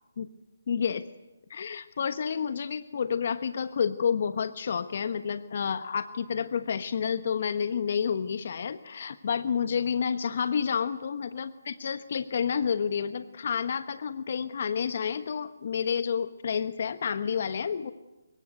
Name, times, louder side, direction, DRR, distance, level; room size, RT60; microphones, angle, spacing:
voice 1, 0.7-1.0 1.5-17.9, left 7 dB, 50° left, 11 dB, 1.2 m, -29 dB
24.5 x 23.0 x 9.4 m, 1.0 s
figure-of-eight pair, 145°, 0 cm